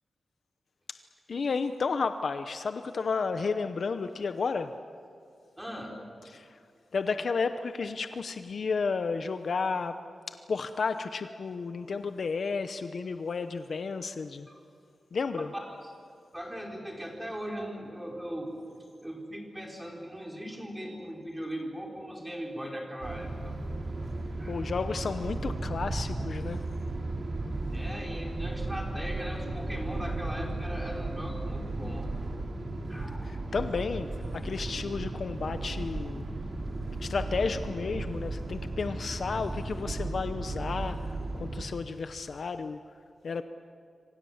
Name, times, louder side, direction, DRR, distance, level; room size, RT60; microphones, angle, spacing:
voice 1, 1.3-4.8 6.3-6.6 6.9-10.0 10.3-14.5 15.1-15.5 24.5-26.6 33.5-34.1 34.3-36.2 37.0-42.8 43.2-43.4, left 4 dB, 55° left, 9 dB, 0.8 m, -32 dB
voice 2, 5.6-5.9 14.5-14.6 15.4-15.9 16.3-18.6 19.0-23.5 24.4-24.6 27.7-32.1 32.9-33.4, equal, 5° right, 0 dB, 4.1 m, -39 dB
sound 1, 23.0-41.6, right 2 dB, 40° right, 2.8 m, -35 dB
26.5 x 25.0 x 7.3 m, 2.4 s
wide cardioid pair, 175°, 0 cm